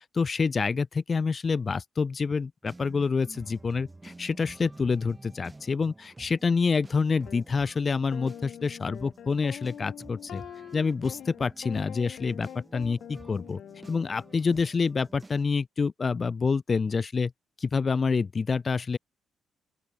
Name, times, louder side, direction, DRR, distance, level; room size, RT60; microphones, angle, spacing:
voice 1, 0.1-10.4 10.7-13.6 13.9-17.3 17.6-19.0, left 5 dB, 35° left, 3.2 m, -27 dB
sound 1, 2.6-15.4, right 2 dB, 15° right, 6.6 m, -50 dB
sound 2, 7.3-7.4 8.1-14.4, left 10 dB, 70° left, 4.6 m, -44 dB
open air
cardioid pair, 90°, 0 cm